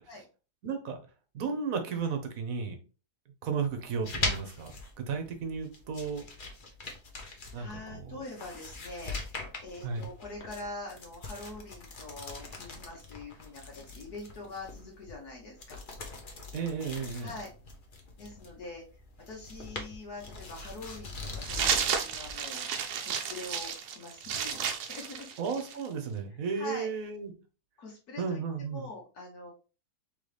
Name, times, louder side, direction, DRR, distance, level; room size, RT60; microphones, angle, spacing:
voice 1, 0.6-1.0 1.3-2.8 3.4-4.7 5.1-6.3 7.5-8.2 9.8-10.0 16.5-17.3 25.4-27.3 28.2-28.9, right 5 dB, 65° right, 1.3 m, -34 dB
sound 1, 3.8-22.3, left 3 dB, 40° left, 0.9 m, -42 dB
voice 2, 7.5-15.8 17.2-17.5 18.2-18.8 19.3-22.7 23.0-24.6 24.9-25.3 26.5-26.9 27.8-29.5, left 2 dB, 75° left, 1.6 m, -44 dB
sound 2, 21.4-25.9, right 7 dB, 85° right, 1.2 m, -32 dB
4.0 x 3.8 x 3.3 m
omnidirectional pair, 1.6 m